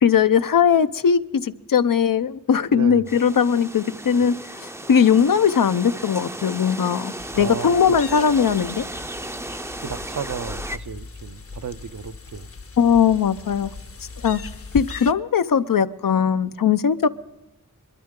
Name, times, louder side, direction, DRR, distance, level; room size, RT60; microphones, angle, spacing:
voice 1, 0.0-4.3 4.6-8.8 12.8-13.7 14.2-14.4 14.7-17.1, left 7 dB, 85° left, 0.6 m, -19 dB
voice 2, 2.7-3.1 4.1-4.3 7.3-7.8 9.8-12.5, right 6 dB, 65° right, 0.6 m, -33 dB
sound 1, 3.1-10.8, right 1 dB, 10° right, 0.5 m, -35 dB
sound 2, 7.2-15.1, left 4 dB, 45° left, 0.7 m, -38 dB
22.0 x 12.5 x 3.7 m
wide cardioid pair, 80°, 32 cm